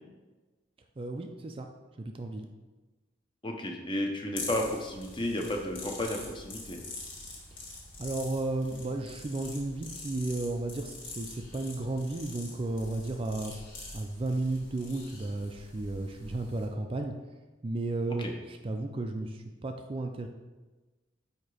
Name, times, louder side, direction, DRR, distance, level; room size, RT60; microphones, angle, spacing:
voice 1, 1.0-1.7 2.0-2.5 7.5-7.6 8.0-13.6 13.9-17.1 17.6-20.3, right 2 dB, 30° right, 4 dB, 0.4 m, -33 dB
voice 2, 3.4-6.8 18.2-18.3, left 1 dB, 25° left, 2 dB, 0.8 m, -33 dB
sound 1, 4.3-16.7, left 2 dB, 85° left, 1.8 m, -45 dB
8.6 x 2.9 x 4.9 m, 1.2 s
head